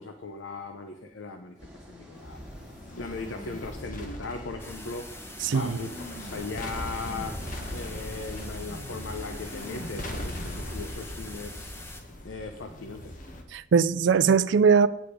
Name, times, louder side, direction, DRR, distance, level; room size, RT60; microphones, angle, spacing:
voice 1, 0.0-1.6 1.9-2.4 3.0-5.1 5.4-5.9 6.2-7.3 7.7-11.7 12.2-13.1, left 3 dB, 85° left, 0.7 m, -38 dB
sound 1, 1.6-8.5, equal, 5° right, 2.2 m, -47 dB
sound 2, 2.2-13.4, left 1 dB, 45° left, 1.1 m, -39 dB
sound 3, 4.6-12.0, left 2 dB, 15° left, 0.7 m, -45 dB
voice 2, 5.4-5.8 13.5-14.9, right 6 dB, 70° right, 0.4 m, -20 dB
8.9 x 7.0 x 4.9 m
head